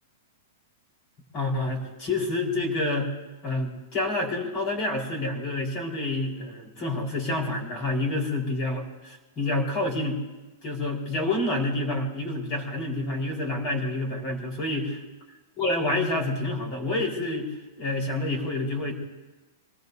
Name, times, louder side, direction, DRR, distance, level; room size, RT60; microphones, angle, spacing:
voice 1, 1.3-3.1 3.4-10.2 10.6-15.0 15.6-18.9, left 2 dB, 25° left, 0 dB, 4.5 m, -28 dB
26.5 x 19.5 x 2.7 m, 1.2 s
supercardioid pair, 170°, 0 cm